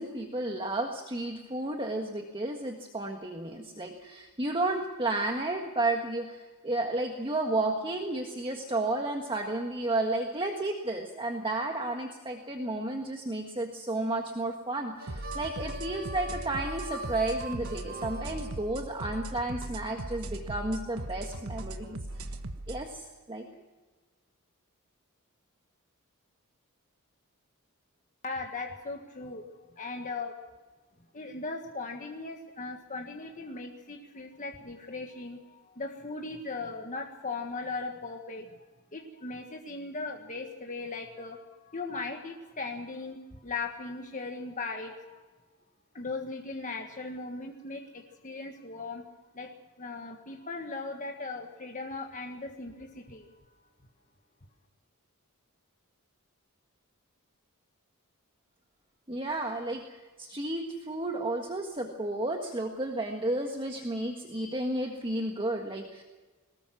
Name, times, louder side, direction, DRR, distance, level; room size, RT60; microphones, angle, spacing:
voice 1, 0.0-22.3 22.7-23.5 59.1-66.0, right 2 dB, 25° right, 2 dB, 1.6 m, -32 dB
Harmonica, 15.0-19.2, equal, 45° right, 6.1 m, -42 dB
sound 1, 15.1-22.8, right 2 dB, 70° right, 1.4 m, -39 dB
voice 2, 28.2-29.4 29.8-30.4 31.1-38.5 38.9-45.2 45.9-49.0 49.3-49.5 49.8-53.3, left 3 dB, 35° left, 2 dB, 1.6 m, -38 dB
22.5 x 20.0 x 6.2 m, 1.3 s
head